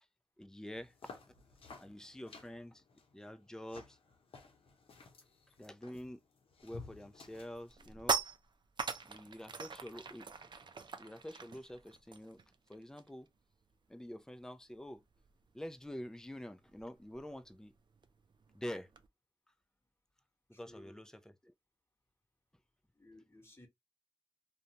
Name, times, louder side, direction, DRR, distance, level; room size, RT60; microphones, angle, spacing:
voice 1, 0.4-0.9 1.3-1.4 1.8-2.8 3.1-4.0 5.6-6.2 6.6-8.2 9.0-10.3 11.0-12.4 12.7-13.3 13.9-15.0 15.5-17.7 18.5-18.9 20.5-21.1 21.4-21.5, left 1 dB, 5° left, 0.4 m, -47 dB
sound 1, 0.7-7.7, left 4 dB, 85° left, 0.7 m, -55 dB
sound 2, 6.8-6.9 7.3-13.3 13.5-13.8 14.1-19.1, right 5 dB, 55° right, 0.4 m, -42 dB
voice 2, 7.8-8.1 20.5-21.1 22.9-23.7, left 1 dB, 25° left, 1.2 m, -59 dB
2.5 x 2.2 x 2.8 m
cardioid pair, 40°, 9 cm